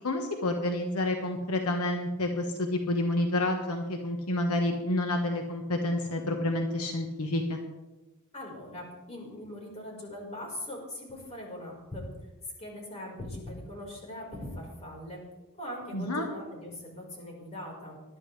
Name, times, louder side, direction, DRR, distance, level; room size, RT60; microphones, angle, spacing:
voice 1, 0.0-7.6 15.9-16.3, left 1 dB, 75° left, 3 dB, 1.3 m, -29 dB
voice 2, 8.3-12.1 12.6-15.2 15.5-18.0, left 1 dB, 30° left, -2 dB, 4.8 m, -41 dB
20.0 x 12.0 x 3.4 m, 1.1 s
head